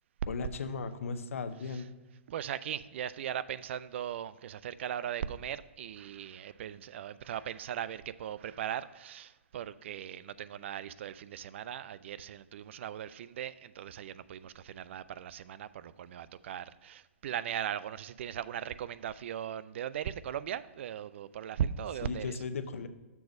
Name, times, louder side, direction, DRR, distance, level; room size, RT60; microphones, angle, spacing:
voice 1, 0.3-1.9 22.0-22.9, left 4 dB, 80° left, 10 dB, 0.7 m, -36 dB
voice 2, 2.3-22.4, right 9 dB, 60° right, 16 dB, 0.3 m, -38 dB
6.8 x 4.0 x 5.8 m, 1.2 s
hypercardioid pair, 135°, 7 cm